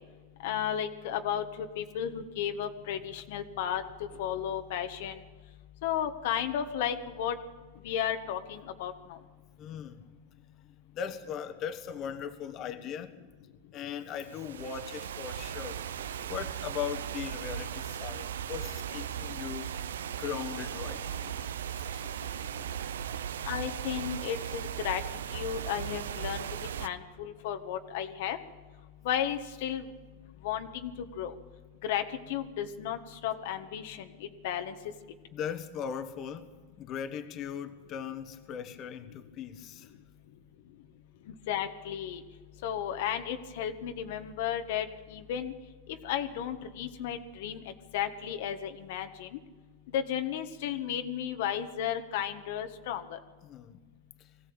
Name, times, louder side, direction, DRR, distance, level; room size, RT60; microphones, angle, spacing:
voice 1, 0.4-3.8 4.2-5.2 5.8-7.4 7.8-8.9 23.4-25.0 25.3-26.4 26.8-28.4 29.0-29.8 30.4-30.9 31.2-31.3 31.8-34.1 34.4-34.7 41.5-42.2 42.6-45.5 46.0-47.6 47.9-49.4 49.9-53.2, left 9 dB, 65° left, 1.4 m, -33 dB
voice 2, 9.6-10.0 10.9-13.1 13.7-15.8 16.2-19.7 20.2-21.4 21.7-22.1 35.3-39.9 53.4-53.8 54.2-54.3, left 8 dB, 40° left, 1.4 m, -39 dB
sound 1, 14.2-26.9, right 9 dB, 90° right, 0.7 m, -37 dB
21.0 x 15.5 x 8.8 m
supercardioid pair, 125°, 0 cm